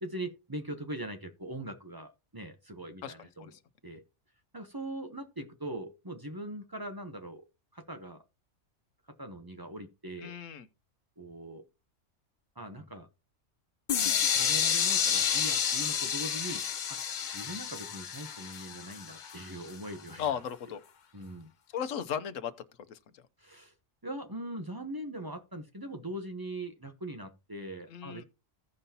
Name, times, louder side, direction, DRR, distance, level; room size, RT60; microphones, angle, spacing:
voice 1, 0.0-3.5 3.8-4.0 4.5-7.4 7.7-8.2 9.2-10.3 11.2-11.6 12.6-13.1 14.0-16.6 17.3-20.2 21.1-21.5 23.4-23.7 24.0-28.2, right 1 dB, 20° right, 0.7 m, -41 dB
voice 2, 3.0-3.6 10.2-10.7 20.2-20.8 21.7-22.5 22.9-23.2 27.9-28.2, left 8 dB, 80° left, 1.1 m, -36 dB
sound 1, 13.9-19.7, left 8 dB, 50° left, 0.6 m, -30 dB
16.0 x 5.3 x 2.8 m
omnidirectional pair, 1.3 m